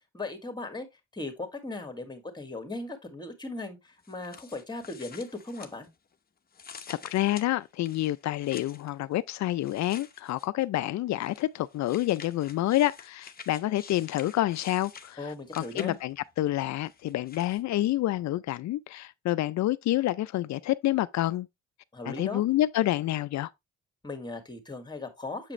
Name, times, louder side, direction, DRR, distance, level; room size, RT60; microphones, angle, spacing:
voice 1, 0.1-0.9 1.1-5.9 15.2-16.0 21.9-22.4 24.0-25.5, left 2 dB, 15° left, 2.0 m, -38 dB
sound 1, 4.0-6.1 6.5-8.9 9.6-10.6 11.2-16.2 16.9-17.6, left 6 dB, 30° left, 0.9 m, -48 dB
voice 2, 6.9-21.5 22.1-23.5, left 15 dB, 65° left, 0.5 m, -28 dB
7.6 x 5.0 x 3.1 m
cardioid pair, 90°, 30 cm